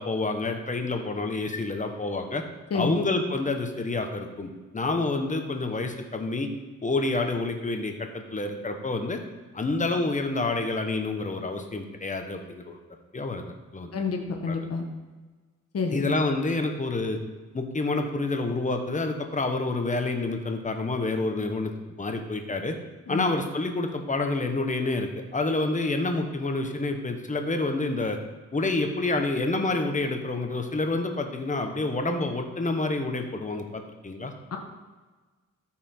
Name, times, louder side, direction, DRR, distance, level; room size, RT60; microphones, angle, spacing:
voice 1, 0.0-2.4 2.7-6.5 6.8-9.2 9.5-12.8 13.1-14.0 14.5-14.6 15.9-17.2 17.5-22.7 23.1-28.2 28.5-34.3, left 2 dB, 25° left, 5 dB, 1.1 m, -28 dB
voice 2, 13.9-14.9 15.7-16.1 23.1-23.3 34.5-34.6, left 4 dB, 50° left, 2 dB, 1.3 m, -29 dB
13.5 x 5.8 x 4.4 m, 1.3 s
wide cardioid pair, 145°, 31 cm